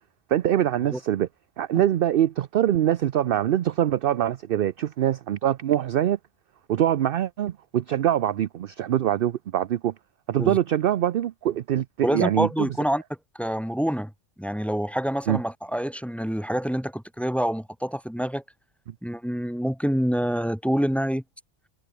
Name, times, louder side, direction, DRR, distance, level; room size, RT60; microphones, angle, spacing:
voice 1, 0.3-1.3 1.6-6.2 6.7-9.9 10.3-12.7 15.3-15.4, right 11 dB, 60° right, 0.7 m, -23 dB
voice 2, 12.0-13.0 13.4-14.1 14.4-18.4 19.0-21.2, equal, ahead, 1.8 m, -26 dB
omnidirectional pair, 1.2 m